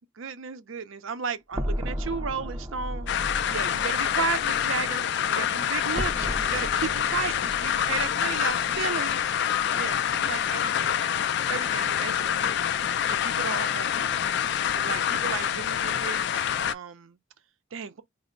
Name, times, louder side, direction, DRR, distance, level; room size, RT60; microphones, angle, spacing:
voice 1, 0.2-3.1 3.5-9.2 9.7-11.0 11.5-12.7 13.1-14.2 14.8-17.2 17.7-18.0, right 5 dB, 85° right, 0.5 m, -34 dB
sound 1, 1.5-5.6 5.9-9.3, equal, 20° right, 0.5 m, -35 dB
sound 2, 3.1-16.7, left 9 dB, 60° left, 0.3 m, -26 dB
4.3 x 2.0 x 3.7 m
head